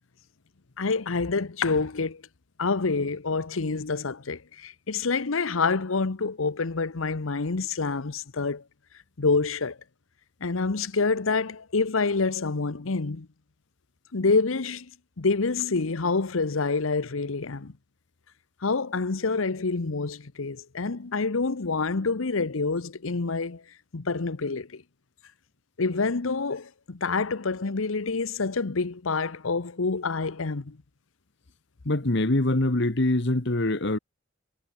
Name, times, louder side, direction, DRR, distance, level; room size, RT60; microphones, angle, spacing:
voice 1, 0.8-2.2 2.6-8.6 9.2-9.8 10.4-13.3 14.1-14.9 15.2-17.7 18.6-23.6 23.9-24.8 25.8-30.8, left 4 dB, 85° left, 0.9 m, -27 dB
voice 2, 31.8-34.0, left 1 dB, 60° left, 1.6 m, -24 dB
head